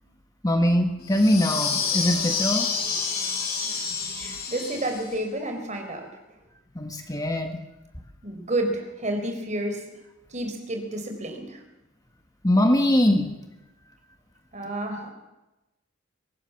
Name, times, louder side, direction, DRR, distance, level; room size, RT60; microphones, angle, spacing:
voice 1, 0.4-2.7 6.7-7.6 12.4-13.3, left 1 dB, 20° left, 5 dB, 1.6 m, -22 dB
sound 1, 1.1-5.1, left 5 dB, 50° left, 6.8 m, -28 dB
voice 2, 4.2-6.1 8.2-9.8 10.3-11.6 14.5-15.1, right 1 dB, 35° right, 5 dB, 4.5 m, -30 dB
23.5 x 18.0 x 7.2 m, 0.98 s
head